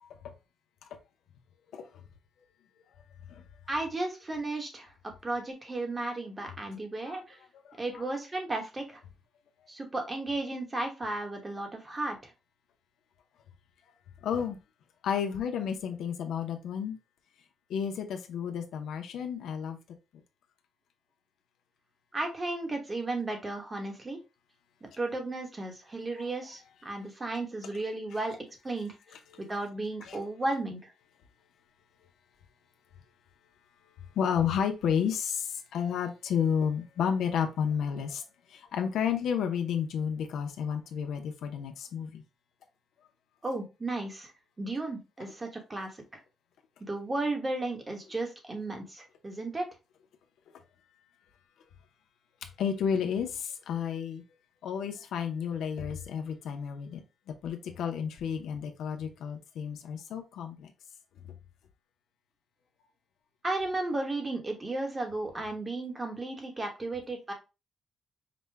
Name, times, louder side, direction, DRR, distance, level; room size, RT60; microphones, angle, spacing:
voice 1, 3.7-4.9 5.2-7.4 7.8-9.0 9.7-12.2 22.1-24.2 25.0-28.4 28.6-28.9 29.4-30.8 43.4-44.3 44.6-46.0 46.8-49.7 63.4-67.3, right 2 dB, 20° right, 1.1 m, -34 dB
voice 2, 7.5-8.0 14.2-14.6 15.0-17.0 17.7-19.8 26.2-26.3 29.3-29.5 30.0-30.2 34.1-38.2 38.5-42.2 52.6-54.2 54.6-57.0 57.3-60.7 61.2-61.3, left 7 dB, 85° left, 0.7 m, -31 dB
5.0 x 2.2 x 3.3 m
cardioid pair, 120°, 0 cm